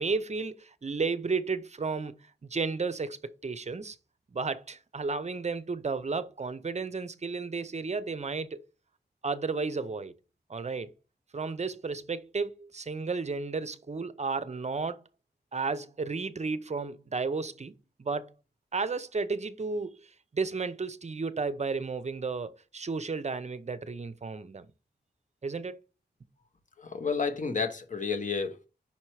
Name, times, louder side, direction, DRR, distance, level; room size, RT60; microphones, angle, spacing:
voice 1, 0.0-4.0 4.3-8.6 9.2-10.1 10.5-10.9 11.3-15.0 15.5-17.7 18.0-18.3 18.7-24.7 25.4-25.8, right 4 dB, 40° right, 0.6 m, -33 dB
voice 2, 26.8-28.7, left 5 dB, 45° left, 1.1 m, -31 dB
5.7 x 4.4 x 4.7 m
wide cardioid pair, 90°, 18 cm